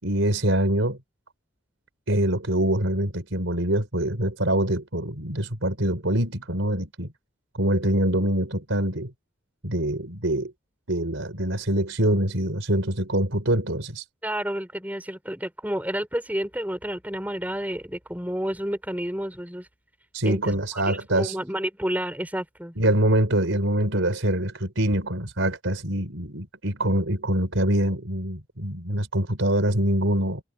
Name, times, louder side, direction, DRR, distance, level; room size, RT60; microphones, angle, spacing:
voice 1, 0.0-1.0 2.1-7.1 7.6-9.1 9.6-10.5 10.9-14.0 20.1-21.4 22.8-30.4, right 1 dB, 85° right, 4.1 m, -24 dB
voice 2, 14.2-19.7 20.2-22.9, equal, 10° right, 4.9 m, -30 dB
head